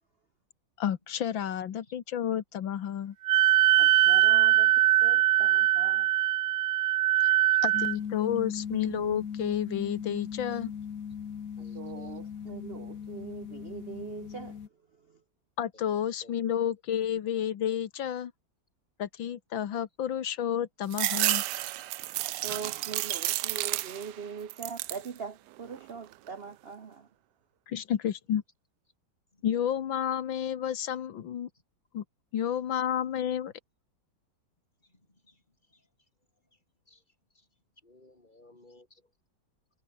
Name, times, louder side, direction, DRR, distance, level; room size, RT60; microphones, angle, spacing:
voice 1, 0.8-3.2 7.6-10.7 15.6-18.3 19.0-21.4 27.7-28.4 29.4-31.5 31.9-32.0 32.3-33.5, left 9 dB, 90° left, 2.1 m, -31 dB
Wind instrument woodwind instrument, 3.2-7.9, right 15 dB, 90° right, 0.7 m, -22 dB
voice 2, 3.8-6.1 11.7-14.6 14.9-15.2 22.4-27.1, right 6 dB, 45° right, 0.9 m, -42 dB
voice 3, 7.2-7.6 7.9-8.4 11.6-12.2 15.7-15.8 16.2-16.3 29.3-29.4 32.5-32.6 34.8-35.4 35.7-35.8 36.9-37.0 37.3-37.5 37.8-39.0, left 2 dB, 25° left, 4.0 m, -57 dB
sound 1, 7.7-14.7, left 7 dB, 50° left, 1.6 m, -38 dB
sound 2, 20.9-24.2 24.5-25.1 25.6-26.3, right 16 dB, 75° right, 1.1 m, -31 dB
omnidirectional pair, 2.0 m